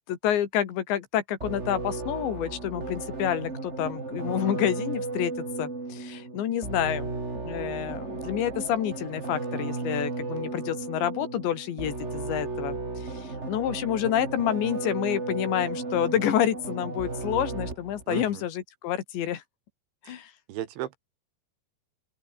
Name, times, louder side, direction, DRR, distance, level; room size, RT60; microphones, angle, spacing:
voice 1, 0.1-5.3 5.6-7.1 7.4-19.4 20.0-20.3, left 10 dB, 65° left, 4.3 m, -28 dB
sound 1, 1.4-18.0, right 3 dB, 20° right, 2.2 m, -34 dB
voice 2, 18.1-18.4 20.1-20.2 20.5-21.0, right 12 dB, 75° right, 3.8 m, -34 dB
open air
omnidirectional pair, 5.6 m